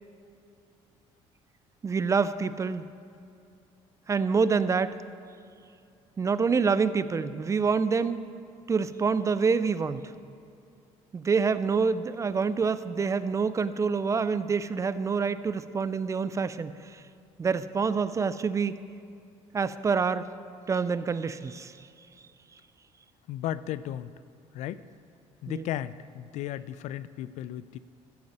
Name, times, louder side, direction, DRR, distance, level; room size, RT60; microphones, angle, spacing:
voice 1, 1.8-2.8 4.1-5.0 6.2-8.3 8.7-10.0 11.1-17.0 17.4-18.7 19.5-20.2 20.7-21.7 25.5-25.6, right 5 dB, 25° right, 14 dB, 0.4 m, -26 dB
voice 2, 23.3-24.1 24.5-24.8 25.4-27.8, left 12 dB, 70° left, 16 dB, 0.4 m, -35 dB
14.5 x 5.3 x 7.1 m, 2.6 s
cardioid pair, 110°, 12 cm